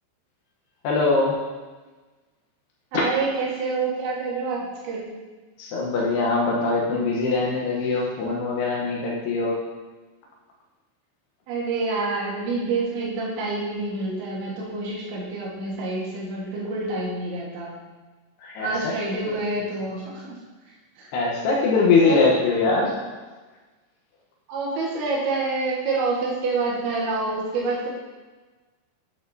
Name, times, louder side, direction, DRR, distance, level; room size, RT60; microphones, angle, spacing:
voice 1, 0.8-1.4 5.6-9.6 18.4-18.9 21.1-22.9, left 3 dB, 80° left, -2 dB, 2.4 m, -22 dB
voice 2, 2.9-5.1 11.5-17.8 18.6-20.4 21.0-21.1 22.0-22.2 24.5-27.9, right 3 dB, 65° right, -4 dB, 3.5 m, -27 dB
8.7 x 8.6 x 2.7 m, 1.3 s
omnidirectional pair, 5.9 m